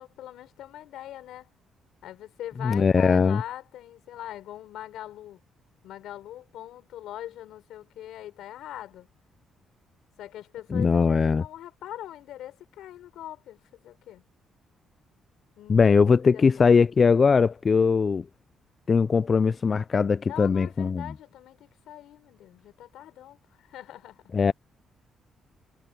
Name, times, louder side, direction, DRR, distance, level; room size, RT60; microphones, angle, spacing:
voice 1, 0.0-1.5 2.0-5.4 5.8-9.1 10.2-14.2 15.6-16.7 20.2-24.2, left 12 dB, 85° left, 4.3 m, -42 dB
voice 2, 2.6-3.4 10.7-11.4 15.7-18.3 18.9-21.1 24.3-24.5, left 5 dB, 40° left, 0.3 m, -20 dB
cardioid pair, 90°, 0 cm